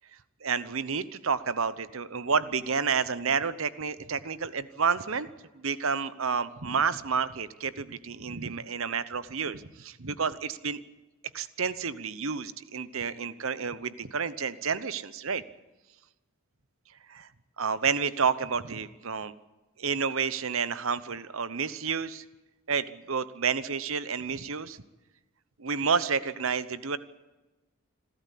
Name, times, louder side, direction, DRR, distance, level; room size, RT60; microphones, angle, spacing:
voice 1, 0.4-5.3 5.5-10.8 11.3-15.4 17.1-17.3 17.6-19.3 19.8-22.2 22.7-24.8 25.6-27.0, right 5 dB, 70° right, 15 dB, 0.9 m, -30 dB
26.5 x 13.0 x 8.5 m, 1.1 s
head